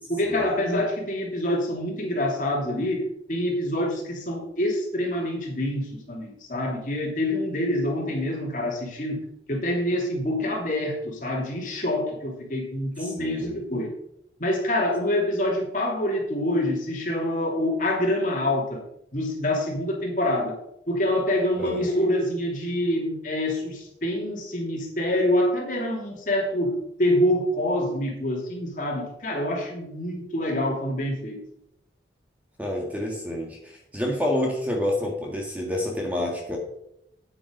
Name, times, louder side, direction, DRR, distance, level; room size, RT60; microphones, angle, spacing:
voice 1, 0.1-3.0 3.3-9.2 9.5-13.9 14.4-18.8 19.1-20.6 20.9-31.4, left 1 dB, 45° left, -1 dB, 2.9 m, -26 dB
voice 2, 13.0-13.6 21.6-21.8 32.6-36.6, left 1 dB, 10° right, 0 dB, 1.6 m, -28 dB
9.5 x 8.6 x 5.2 m, 0.76 s
head